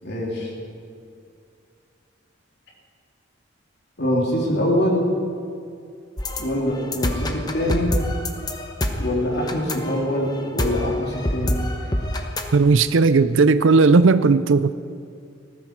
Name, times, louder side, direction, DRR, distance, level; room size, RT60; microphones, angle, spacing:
voice 1, 0.0-0.5 4.0-5.1 6.4-7.9 9.0-11.6, left 1 dB, 60° left, -2 dB, 3.1 m, -24 dB
sound 1, 6.2-12.6, left 1 dB, 20° left, 1.0 m, -26 dB
voice 2, 12.5-14.7, right 4 dB, 85° right, 13 dB, 0.5 m, -16 dB
18.5 x 14.5 x 4.6 m, 2.4 s
head